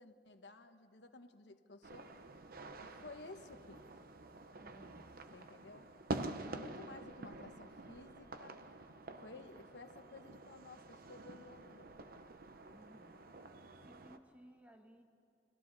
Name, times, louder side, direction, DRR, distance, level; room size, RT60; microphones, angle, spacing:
voice 1, 0.0-2.1 2.8-4.1 5.3-5.9 6.5-8.6 9.2-12.1, left 3 dB, 80° left, 7 dB, 1.2 m, -55 dB
sound 1, 1.8-14.2, right 2 dB, 55° right, 0.9 m, -48 dB
voice 2, 4.6-5.2 12.7-13.3 13.7-15.0, equal, 10° right, 4 dB, 1.3 m, -60 dB
30.0 x 21.5 x 4.1 m, 2.6 s
head